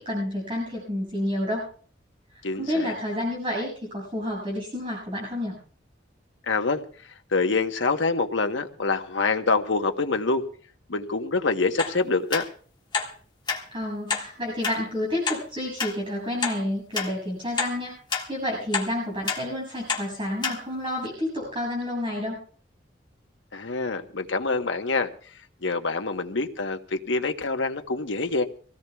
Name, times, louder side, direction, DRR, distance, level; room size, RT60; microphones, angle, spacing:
voice 1, 0.0-1.7 2.6-5.6 13.7-17.9 18.3-22.4, left 1 dB, 30° right, 6.9 m, -29 dB
voice 2, 2.4-2.9 6.5-6.8 7.3-10.5 10.9-12.4 23.5-25.1 25.6-28.4, left 3 dB, 90° left, 1.1 m, -26 dB
sound 1, 11.8-11.9 12.3-12.4 12.9-13.1 13.5-13.6 14.1-14.3 14.6-14.8 15.2-15.4 15.8-15.9 16.4-16.6 16.9-17.1 17.6-17.7 18.1-18.3 18.7-18.9 19.3-19.4 19.9-20.0 20.4-20.6 21.0-21.1, left 5 dB, 25° left, 1.9 m, -27 dB
25.0 x 17.0 x 2.3 m
head